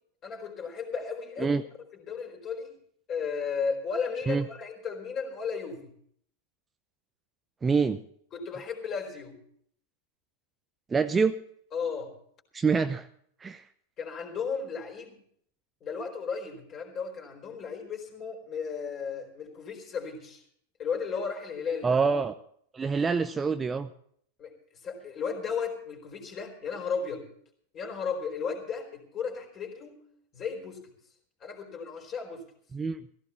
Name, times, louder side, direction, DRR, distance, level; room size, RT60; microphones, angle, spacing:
voice 1, 0.2-1.6 1.9-2.7 3.1-5.9 8.3-9.4 11.7-12.1 14.0-15.2 15.8-20.4 20.8-22.0 24.4-27.2 27.7-30.0 30.3-30.8 31.4-32.4, left 5 dB, 30° left, 3 dB, 4.4 m, -34 dB
voice 2, 7.6-8.0 10.9-11.4 12.5-13.1 13.4-13.6 21.8-22.4 22.7-23.9 32.7-33.0, right 5 dB, 15° right, 10 dB, 0.6 m, -26 dB
16.5 x 16.5 x 4.3 m, 0.64 s
figure-of-eight pair, 90°, 0 cm